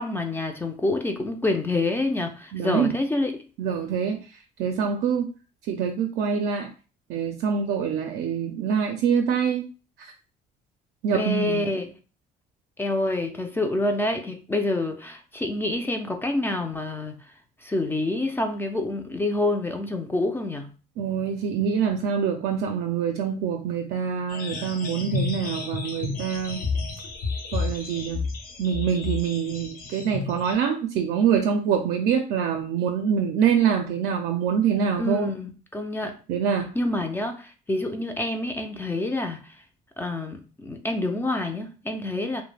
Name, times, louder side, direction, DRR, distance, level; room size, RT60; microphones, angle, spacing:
voice 1, 0.0-3.4 11.1-11.9 12.8-17.2 17.6-20.7 35.0-36.2 36.7-39.5 40.0-42.4, left 2 dB, 15° left, 0.3 m, -27 dB
voice 2, 2.5-2.9 3.6-4.2 4.6-5.3 5.7-6.7 7.1-9.6 11.0-11.6 21.0-26.6 27.5-28.2 28.6-35.3 36.3-36.7, right 7 dB, 80° right, 0.4 m, -25 dB
sound 1, 24.3-30.5, left 4 dB, 60° left, 0.7 m, -31 dB
2.3 x 2.1 x 3.1 m
cardioid pair, 110°, 17 cm